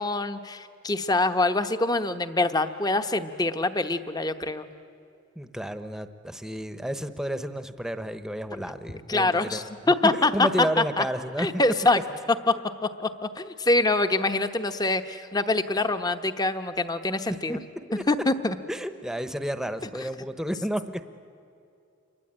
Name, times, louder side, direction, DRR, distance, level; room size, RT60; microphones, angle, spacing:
voice 1, 0.0-4.7 9.1-10.5 11.0-11.1 11.4-12.0 12.5-12.6 12.8-17.6 18.1-18.6, left 2 dB, 20° left, 10 dB, 1.0 m, -25 dB
voice 2, 5.4-9.6 9.8-11.6 17.5-18.0 18.7-21.0, equal, 5° right, 10 dB, 1.0 m, -31 dB
29.0 x 23.0 x 8.9 m, 2.6 s
head